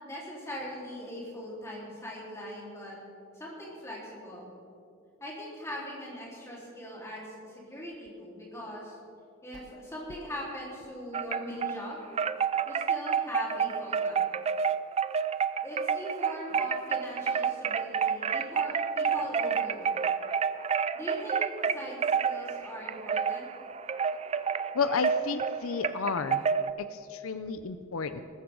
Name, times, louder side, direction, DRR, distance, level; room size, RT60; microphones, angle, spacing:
voice 1, 0.0-3.0 3.3-4.5 5.2-9.0 9.4-12.0 12.7-14.2 15.6-19.9 20.9-23.5, equal, 15° left, -5 dB, 4.0 m, -40 dB
Wind chime, 11.1-11.8 12.2-26.7, right 6 dB, 30° right, 0.3 m, -29 dB
voice 2, 24.7-26.4 26.8-28.2, left 5 dB, 85° left, 11 dB, 0.6 m, -31 dB
19.0 x 14.5 x 3.9 m, 2.5 s
head